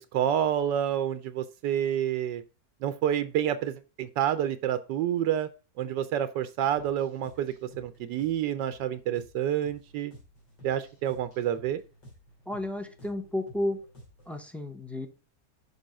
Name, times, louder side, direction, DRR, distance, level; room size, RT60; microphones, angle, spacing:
voice 1, 0.0-2.4 2.8-5.5 5.8-10.1 10.6-11.8, right 10 dB, 80° right, 12 dB, 1.2 m, -28 dB
sound 1, 6.8-14.4, equal, 75° left, 3.5 m, -53 dB
voice 2, 12.5-13.8 14.3-15.1, left 1 dB, ahead, 6 dB, 0.3 m, -32 dB
6.9 x 5.4 x 5.2 m, 0.33 s
omnidirectional pair, 1.9 m